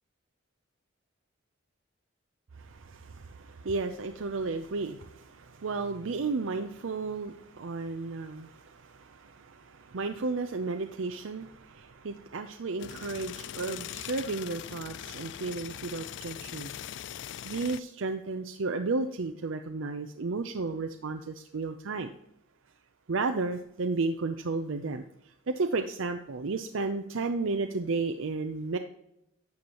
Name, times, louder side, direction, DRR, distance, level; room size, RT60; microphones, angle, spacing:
voice 1, 2.6-16.7 17.4-22.1 23.1-25.0 25.5-28.8, right 3 dB, 85° right, 6 dB, 0.6 m, -33 dB
sound 1, 12.8-17.8, left 10 dB, 60° left, 0.3 m, -41 dB
11.5 x 7.2 x 3.0 m, 0.81 s
head